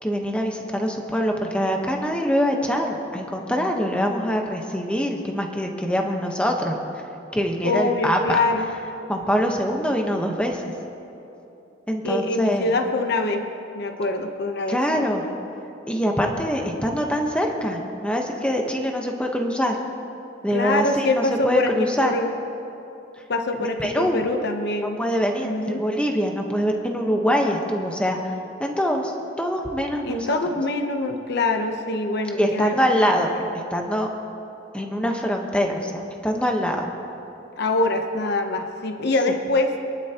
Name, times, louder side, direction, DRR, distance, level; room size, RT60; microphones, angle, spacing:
voice 1, 0.0-6.8 7.3-8.4 9.1-10.7 11.9-12.7 14.7-15.2 15.9-19.8 20.4-22.1 23.5-24.2 24.8-28.3 28.6-29.1 29.4-30.4 32.4-33.3 33.7-34.1 34.7-36.9, equal, 5° left, 1 dB, 1.1 m, -24 dB
voice 2, 7.6-8.7 12.0-13.5 13.7-15.0 20.5-22.3 23.3-25.0 25.4-25.8 30.0-32.8 37.6-39.7, left 2 dB, 55° left, 5 dB, 0.9 m, -24 dB
25.5 x 11.5 x 3.0 m, 2.9 s
head